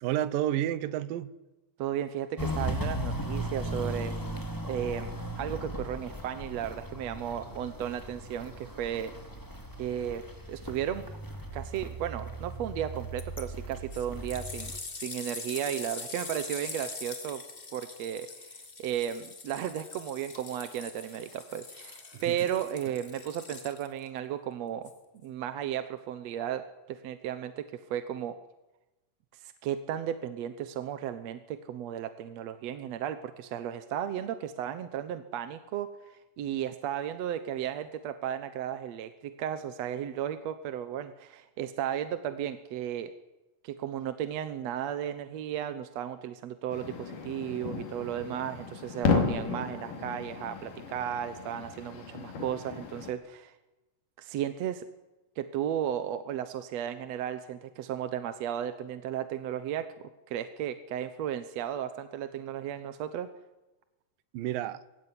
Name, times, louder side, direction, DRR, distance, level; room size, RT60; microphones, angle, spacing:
voice 1, 0.0-1.3 22.1-22.4 64.3-64.8, right 12 dB, 90° right, 2.6 m, -30 dB
voice 2, 1.8-4.1 4.6-9.1 9.8-10.2 10.5-11.0 11.5-14.7 15.0-17.4 17.7-24.9 25.2-26.6 26.9-28.3 29.3-43.1 43.6-53.5 54.2-54.9 55.4-59.9 60.3-63.3, right 10 dB, 65° right, 1.9 m, -34 dB
Walk footsteps, 2.4-14.8, right 1 dB, 5° left, 1.9 m, -37 dB
sound 1, 13.2-13.4 13.9-24.1 24.8-24.9, left 3 dB, 30° left, 1.0 m, -43 dB
sound 2, 46.7-53.1, left 4 dB, 70° left, 4.4 m, -33 dB
21.5 x 16.5 x 9.9 m
omnidirectional pair, 3.9 m